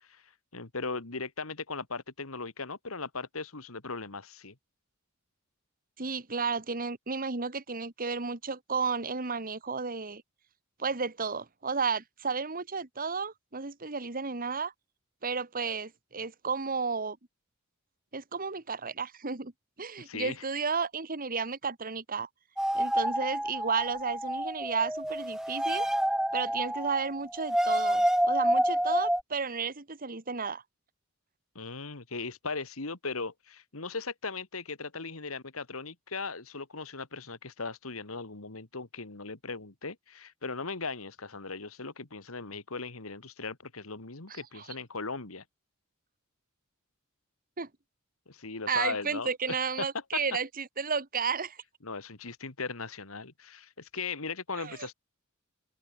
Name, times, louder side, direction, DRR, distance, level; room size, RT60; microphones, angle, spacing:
voice 1, 0.5-4.6 20.0-20.4 31.5-45.4 48.3-49.9 51.8-54.9, left 4 dB, 90° left, 2.2 m, -38 dB
voice 2, 6.0-10.2 10.8-14.7 15.2-17.2 18.1-19.5 19.8-22.3 22.7-25.9 26.3-30.6 44.3-44.7 47.6-47.7 48.7-51.6 54.6-54.9, right 5 dB, 45° right, 2.0 m, -33 dB
sound 1, 22.6-29.2, right 1 dB, 5° right, 0.5 m, -28 dB
open air
head